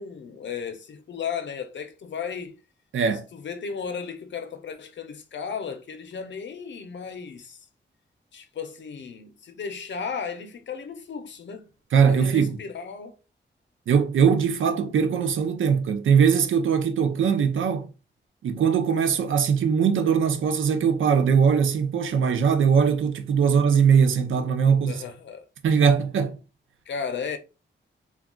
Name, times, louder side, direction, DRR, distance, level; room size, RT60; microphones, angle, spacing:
voice 1, 0.0-2.6 3.3-7.7 8.3-11.7 12.1-13.2 23.4-23.5 24.6-25.4 26.9-27.4, left 6 dB, 70° left, 0.6 m, -35 dB
voice 2, 2.9-3.2 11.9-12.6 13.9-17.9 18.4-25.0 25.6-26.4, right 6 dB, 90° right, 0.5 m, -21 dB
2.3 x 2.3 x 3.6 m
wide cardioid pair, 100°, 20 cm